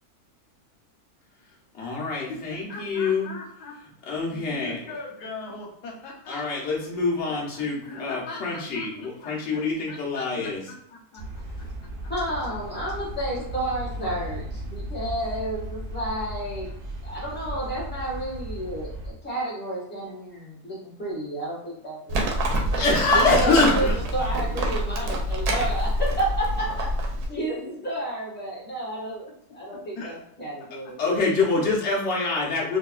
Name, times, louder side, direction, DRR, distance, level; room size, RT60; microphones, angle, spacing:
voice 1, 1.7-3.3 4.1-4.8 6.3-10.6 22.7-23.9 31.0-32.8, left 3 dB, 50° left, -4 dB, 1.1 m, -25 dB
voice 2, 2.3-3.8 4.3-6.9 7.3-11.4 30.0-30.2 30.8-30.9, left 3 dB, 85° left, 0 dB, 1.3 m, -40 dB
sound 1, 11.2-19.1, right 1 dB, 55° right, 0.6 m, -36 dB
voice 3, 12.1-16.7 17.0-22.2 23.1-31.0, right 1 dB, 5° left, -7 dB, 1.1 m, -31 dB
Livestock farm animals working animals, 22.1-27.3, right 1 dB, 80° right, 1.2 m, -26 dB
3.9 x 2.3 x 2.3 m, 0.74 s
omnidirectional pair, 1.6 m